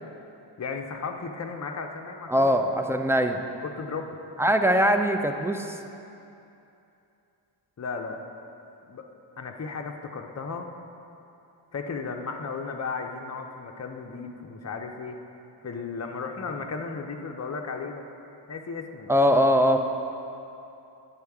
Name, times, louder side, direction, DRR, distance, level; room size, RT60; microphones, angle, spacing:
voice 1, 0.6-2.5 3.6-4.2 7.8-8.2 8.8-9.1 9.4-10.7 11.7-15.2 15.6-18.0 18.5-19.1, left 4 dB, 35° left, 4 dB, 0.6 m, -35 dB
voice 2, 2.3-3.4 4.4-5.7 19.1-19.8, equal, 5° right, 5 dB, 0.3 m, -21 dB
9.4 x 5.6 x 3.5 m, 2.8 s
wide cardioid pair, 70°, 45 cm